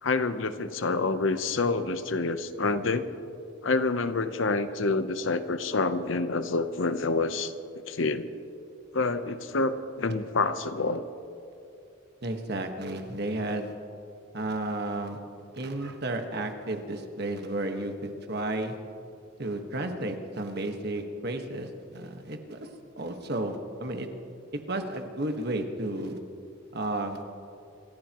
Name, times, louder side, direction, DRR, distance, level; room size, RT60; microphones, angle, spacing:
voice 1, 0.0-3.2 3.6-7.5 7.9-8.3 8.9-11.1, left 3 dB, 70° left, 11 dB, 0.8 m, -27 dB
voice 2, 12.2-13.7 14.3-15.2 15.5-18.8 19.4-22.7 23.0-24.1 24.7-26.2 26.7-27.2, right 1 dB, 55° right, 5 dB, 1.5 m, -32 dB
27.0 x 15.0 x 3.0 m, 2.6 s
head